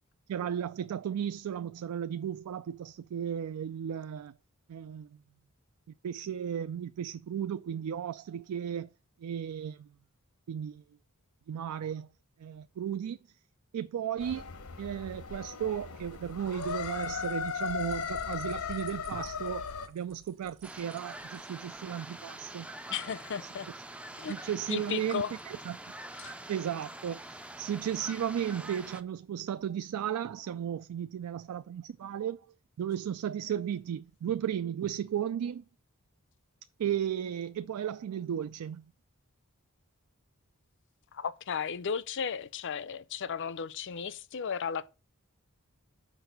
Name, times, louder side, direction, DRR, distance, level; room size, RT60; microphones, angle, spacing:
voice 1, 0.3-4.3 4.7-5.2 6.0-8.9 9.2-9.9 10.5-10.8 11.5-12.1 12.4-13.2 13.7-14.5 14.8-22.7 24.3-25.8 26.5-32.4 32.8-35.6 36.8-38.9, right 9 dB, 85° right, 0.3 m, -35 dB
sound 1, 14.2-19.9, left 6 dB, 80° left, 0.9 m, -37 dB
sound 2, 15.8-21.8, right 3 dB, 55° right, 1.4 m, -56 dB
sound 3, 20.6-29.0, right 1 dB, 5° right, 0.3 m, -45 dB
voice 2, 22.9-23.7 24.2-24.4 24.7-25.3 26.2-26.4 41.1-44.9, left 6 dB, 55° left, 0.5 m, -35 dB
6.1 x 4.7 x 6.6 m
head